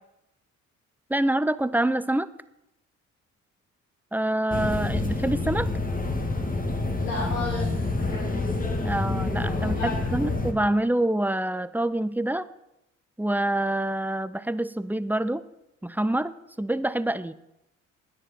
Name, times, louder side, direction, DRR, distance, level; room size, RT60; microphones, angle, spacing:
voice 1, 1.1-2.3 4.1-5.7 8.8-12.5 13.2-15.4 15.8-16.3 16.6-17.3, right 1 dB, 5° right, 15 dB, 0.7 m, -26 dB
sound 1, 4.5-10.5, left 2 dB, 20° left, 2.0 m, -27 dB
voice 2, 7.0-8.7 9.6-10.3, left 3 dB, 85° left, -4 dB, 2.2 m, -34 dB
19.0 x 10.0 x 4.4 m, 0.88 s
figure-of-eight pair, 45°, 38 cm